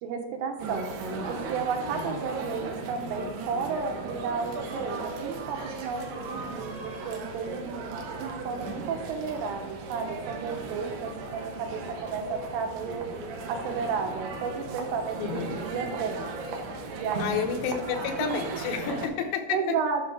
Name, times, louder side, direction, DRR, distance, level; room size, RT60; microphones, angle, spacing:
voice 1, 0.0-0.9 1.3-7.9 8.2-13.1 13.5-16.3 16.9-17.5 19.5-20.0, right 5 dB, 90° right, 4 dB, 3.5 m, -32 dB
sound 1, 0.6-19.1, right 3 dB, 70° right, 2.7 m, -37 dB
voice 2, 1.9-2.3 15.1-15.7 17.2-19.8, left 7 dB, 85° left, 4 dB, 3.4 m, -31 dB
9.4 x 6.0 x 3.6 m, 1.1 s
omnidirectional pair, 5.6 m